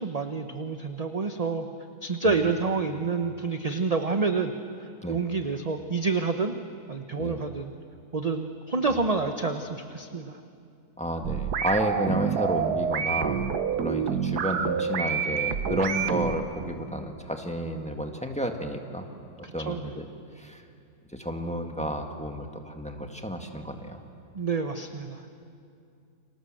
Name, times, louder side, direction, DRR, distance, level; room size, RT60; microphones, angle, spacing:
voice 1, 0.0-1.7 2.0-4.5 4.8-6.5 6.9-7.7 8.1-10.4 19.4-19.9 24.3-25.2, right 4 dB, 30° right, 7 dB, 0.8 m, -28 dB
voice 2, 11.0-13.5 13.8-19.0 19.5-20.1 20.4-20.6 21.1-24.0, equal, 5° left, 4 dB, 1.8 m, -31 dB
sound 1, 11.2-16.4, right 7 dB, 90° right, 1.6 m, -28 dB
29.5 x 25.5 x 7.8 m, 2.5 s
omnidirectional pair, 1.6 m